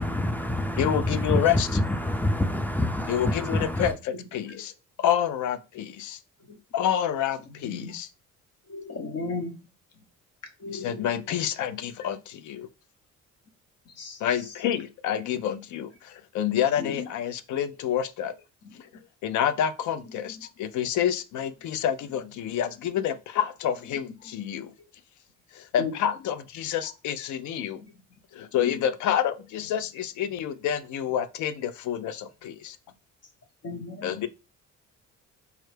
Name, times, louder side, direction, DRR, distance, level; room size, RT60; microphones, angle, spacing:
voice 1, 0.0-3.9, left 1 dB, 5° left, 0.4 m, -26 dB
voice 2, 0.8-1.7 3.1-4.7 5.0-6.2 6.7-8.1 10.7-12.7 14.2-18.3 19.2-24.7 25.5-27.8 28.3-32.8 34.0-34.3, left 9 dB, 75° left, 0.5 m, -28 dB
voice 3, 8.7-9.6 10.6-11.2 14.0-14.2 16.8-17.0 25.8-25.9 27.8-27.9 28.6-28.7 33.6-34.2, left 4 dB, 55° left, 1.0 m, -35 dB
4.6 x 2.2 x 3.3 m
cardioid pair, 90°, 30 cm